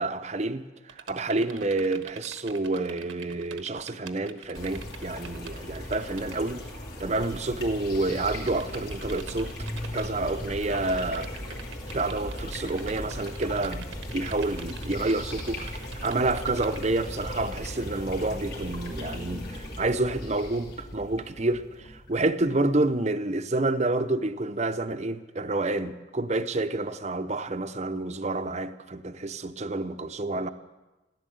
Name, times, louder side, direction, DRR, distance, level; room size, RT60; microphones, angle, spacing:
voice 1, 0.0-6.7 7.0-9.5 9.9-11.3 11.9-13.9 14.1-30.5, right 2 dB, 35° right, 0.7 m, -29 dB
sound 1, 0.9-6.6 7.7-7.8 8.1-8.2 8.5-10.1 10.7-16.9, right 7 dB, 85° right, 1.1 m, -45 dB
sound 2, 4.5-22.7, left 1 dB, 55° left, 3.0 m, -37 dB
16.5 x 11.0 x 7.9 m
head